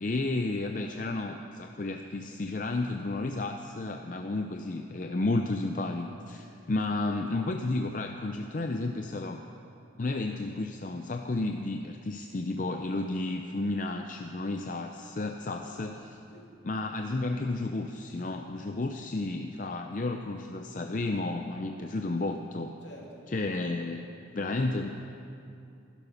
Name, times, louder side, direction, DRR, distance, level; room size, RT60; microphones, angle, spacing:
voice 1, 0.0-9.4 10.0-16.2 16.6-22.7 23.3-24.9, left 2 dB, 40° left, 5 dB, 0.5 m, -32 dB
voice 2, 0.7-1.1 15.5-15.8 16.3-16.5 22.8-23.2, equal, 70° left, -3 dB, 3.0 m, -50 dB
15.5 x 11.5 x 5.8 m, 2.6 s
head